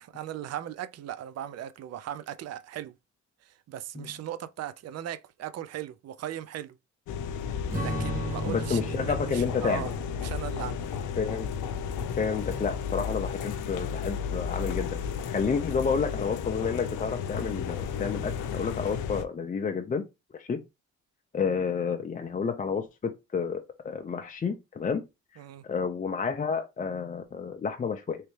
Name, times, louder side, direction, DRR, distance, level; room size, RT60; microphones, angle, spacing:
voice 1, 0.0-2.9 3.4-6.8 7.7-9.9 10.2-10.8 25.4-25.6, right 11 dB, 55° right, 0.5 m, -38 dB
sound 1, 7.1-19.2, left 7 dB, 85° left, 0.5 m, -33 dB
Strum, 7.7-12.4, right 2 dB, 25° right, 1.6 m, -37 dB
voice 2, 8.5-9.9 11.2-11.5 12.2-14.9 15.3-20.0 20.3-20.6 21.3-25.0 25.7-28.2, left 5 dB, 25° left, 0.5 m, -30 dB
3.2 x 2.9 x 3.1 m
cardioid pair, 90°, 30 cm